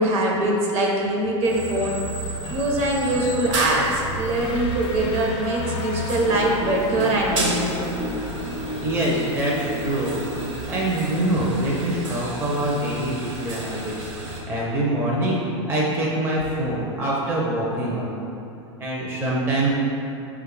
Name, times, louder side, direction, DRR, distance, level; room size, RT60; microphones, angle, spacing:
voice 1, 0.0-2.0 2.5-7.9, right 1 dB, 45° right, -2 dB, 0.9 m, -23 dB
sound 1, 1.4-14.4, right 1 dB, 90° right, 1.0 m, -32 dB
sound 2, 4.3-15.2, left 2 dB, 35° left, 0.4 m, -36 dB
voice 2, 8.8-10.2 10.7-15.4 15.7-18.1 18.8-19.7, right 1 dB, 15° right, -5 dB, 0.6 m, -24 dB
5.1 x 2.3 x 3.8 m, 2.7 s
hypercardioid pair, 115°, 15 cm